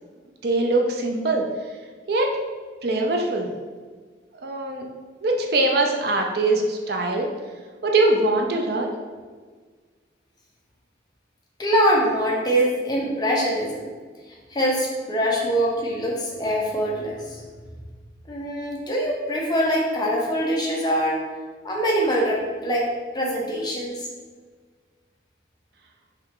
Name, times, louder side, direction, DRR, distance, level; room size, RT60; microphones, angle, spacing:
voice 1, 0.4-1.4 2.1-2.3 2.8-3.5 4.4-4.9 5.2-7.3 7.8-8.9, right 2 dB, 55° right, 2 dB, 0.5 m, -22 dB
voice 2, 11.6-13.9 14.5-17.4 18.3-21.2 21.6-22.9 23.1-24.1, equal, 20° left, -2 dB, 0.7 m, -23 dB
5.4 x 2.4 x 3.6 m, 1.5 s
head